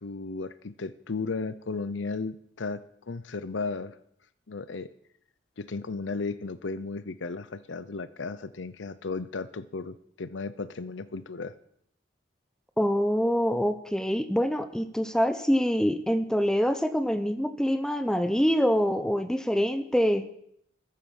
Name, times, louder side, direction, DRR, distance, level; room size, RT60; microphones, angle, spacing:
voice 1, 0.0-2.8 3.1-3.9 4.5-4.9 5.6-11.5, left 4 dB, 80° left, 15 dB, 0.7 m, -35 dB
voice 2, 12.8-20.2, equal, 5° left, 10 dB, 0.8 m, -25 dB
14.0 x 13.0 x 7.2 m, 0.69 s
head